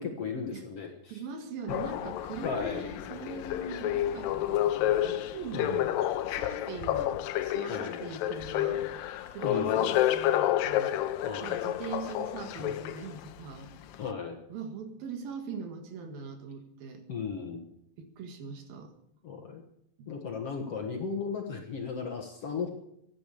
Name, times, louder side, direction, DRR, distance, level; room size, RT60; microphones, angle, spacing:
voice 1, 0.0-1.2 2.4-2.8 5.5-5.8 7.7-8.0 9.1-9.9 11.2-11.6 14.0-14.4 17.1-17.6 19.2-19.6 20.1-22.7, left 5 dB, 55° left, 3 dB, 2.0 m, -36 dB
voice 2, 1.1-5.9 6.3-8.9 9.3-11.0 11.4-13.7 14.5-17.0 18.0-18.9 20.0-20.1, right 5 dB, 75° right, 6 dB, 3.5 m, -41 dB
sound 1, 1.7-13.3 13.9-14.0, left 12 dB, 80° left, 2.3 m, -30 dB
14.0 x 10.0 x 8.5 m, 0.75 s
omnidirectional pair, 4.3 m